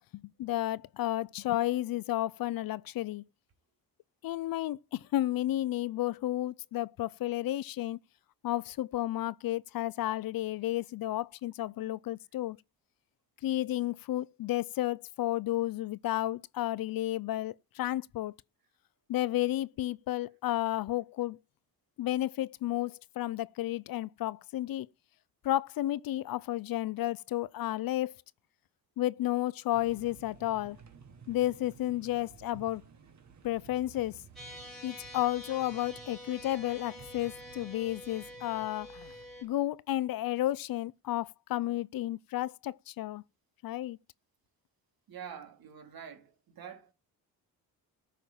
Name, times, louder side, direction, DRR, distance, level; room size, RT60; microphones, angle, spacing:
voice 1, 0.0-3.3 4.2-8.0 8.4-12.6 13.4-18.3 19.1-21.4 22.0-24.9 25.4-28.2 29.0-30.8 31.3-32.8 33.4-34.2 34.8-39.1 39.4-43.2 43.6-44.0, left 14 dB, 65° left, 0.5 m, -32 dB
sound 1, 29.7-39.7, right 6 dB, 45° right, 2.0 m, -55 dB
sound 2, 34.4-39.4, left 1 dB, ahead, 3.9 m, -47 dB
voice 2, 45.1-46.9, right 8 dB, 65° right, 2.9 m, -46 dB
14.0 x 5.7 x 7.4 m
cardioid pair, 125°, 39 cm